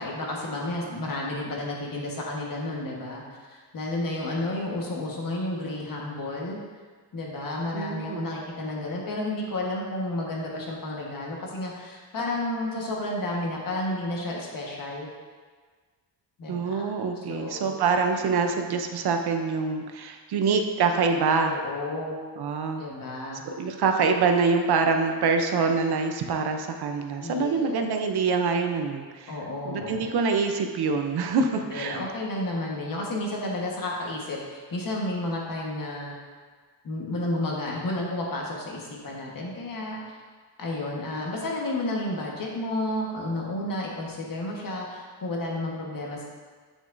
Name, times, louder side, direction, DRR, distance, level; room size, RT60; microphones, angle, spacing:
voice 1, 0.0-6.6 7.1-15.1 16.4-16.9 17.3-17.8 21.4-22.2 22.8-23.4 27.2-27.9 29.3-30.1 31.6-36.2 36.8-40.0 40.6-46.2, left 1 dB, 55° left, -2 dB, 1.4 m, -31 dB
voice 2, 7.7-8.3 16.5-21.6 22.4-22.8 23.4-29.3 29.6-32.0, right 4 dB, 65° right, 5 dB, 0.7 m, -25 dB
8.2 x 6.1 x 2.6 m, 1.5 s
wide cardioid pair, 145°, 41 cm